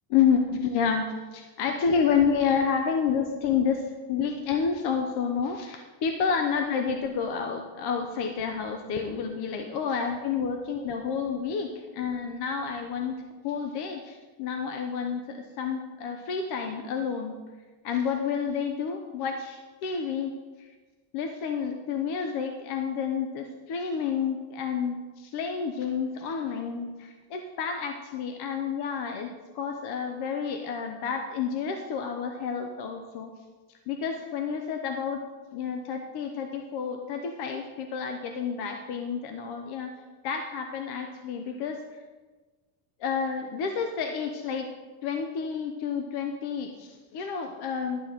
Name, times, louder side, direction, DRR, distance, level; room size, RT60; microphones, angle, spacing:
voice 1, 0.1-3.8 4.1-13.2 13.4-17.4 17.8-20.3 20.6-20.7 21.1-33.3 33.9-35.2 35.5-39.9 40.2-41.8 43.0-44.7 45.0-48.0, left 6 dB, 55° left, 4 dB, 0.8 m, -29 dB
11.5 x 4.1 x 7.4 m, 1.3 s
cardioid pair, 175°, 47 cm